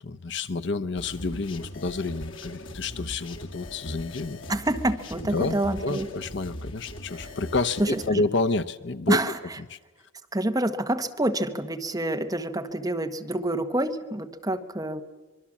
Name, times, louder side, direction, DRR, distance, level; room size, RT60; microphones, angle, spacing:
voice 1, 0.0-4.4 5.3-9.2 9.7-9.8, left 3 dB, 60° left, 11 dB, 0.8 m, -29 dB
sound 1, 1.0-8.1, left 1 dB, 85° left, 2.2 m, -40 dB
voice 2, 4.5-6.1 7.8-8.2 9.1-9.4 10.3-15.0, right 1 dB, 20° right, 6 dB, 1.2 m, -27 dB
24.5 x 23.0 x 7.3 m, 1.3 s
head